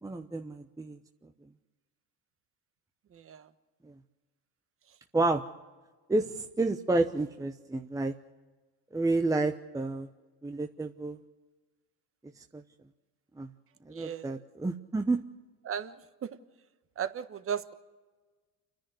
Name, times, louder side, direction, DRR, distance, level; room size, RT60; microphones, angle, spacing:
voice 1, 0.0-1.0 5.1-5.4 6.1-8.1 8.9-10.1 10.4-11.2 12.5-12.6 13.4-13.5 13.9-15.2, right 2 dB, 10° right, 6 dB, 0.9 m, -30 dB
voice 2, 3.1-3.5 13.9-14.3 15.6-16.0 16.2-16.3 17.0-17.7, right 8 dB, 40° right, 11 dB, 1.3 m, -35 dB
29.5 x 10.5 x 9.5 m, 1.3 s
supercardioid pair, 100°, 34 cm